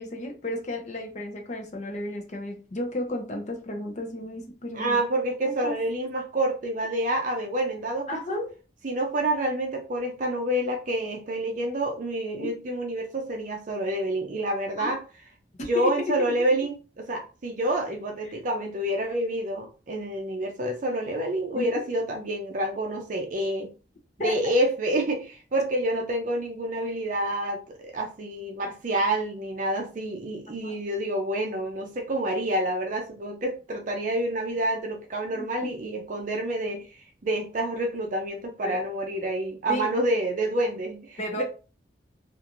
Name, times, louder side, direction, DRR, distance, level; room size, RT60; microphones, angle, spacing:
voice 1, 0.0-5.0 5.4-5.7 8.1-8.5 12.4-12.5 14.8-15.0 15.7-16.3 21.5-21.8 24.2-24.4 30.5-30.7 35.3-35.4 38.6-38.8 39.7-39.9 41.2-41.4, left 1 dB, 40° left, 2 dB, 0.7 m, -33 dB
voice 2, 4.7-8.4 8.8-15.0 15.7-23.7 24.2-36.9 37.2-41.4, right 1 dB, 45° right, 2 dB, 0.5 m, -28 dB
2.9 x 2.5 x 2.5 m, 0.35 s
head